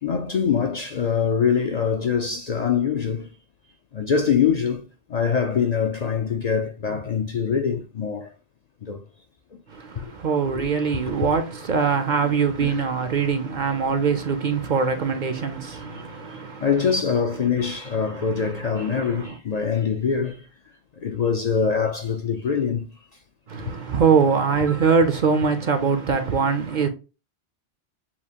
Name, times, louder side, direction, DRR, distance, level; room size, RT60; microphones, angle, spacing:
voice 1, 0.0-3.3 3.9-4.8 5.1-8.3 8.8-9.0 10.0-10.1 10.5-10.7 10.9-11.1 12.2-12.3 12.6-12.8 15.9-16.0 16.3-20.5 21.0-22.9, left 6 dB, 55° left, 0.5 m, -24 dB
voice 2, 9.7-16.7 17.9-19.3 23.5-26.9, right 5 dB, 55° right, 0.6 m, -23 dB
7.0 x 2.5 x 2.8 m
omnidirectional pair, 1.1 m